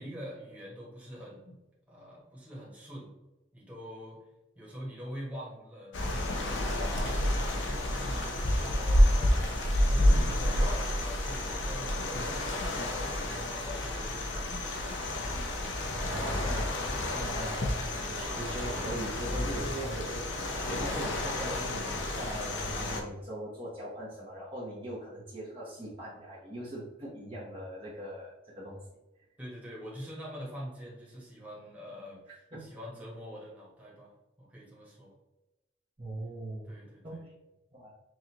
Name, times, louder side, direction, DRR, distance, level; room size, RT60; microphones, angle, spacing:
voice 1, 0.0-1.6 1.9-3.1 3.5-4.3 4.5-7.4 7.6-14.7 16.9-17.4 29.4-34.1 34.4-35.1 36.6-37.2, equal, 10° right, -6 dB, 1.3 m, -45 dB
sound 1, 5.9-23.0, left 1 dB, 70° left, 0.7 m, -29 dB
voice 2, 16.0-28.8 32.5-32.7 36.0-36.7 37.0-37.3 37.7-37.9, right 1 dB, 30° right, -7 dB, 0.9 m, -40 dB
6.2 x 2.5 x 2.9 m, 1.0 s
head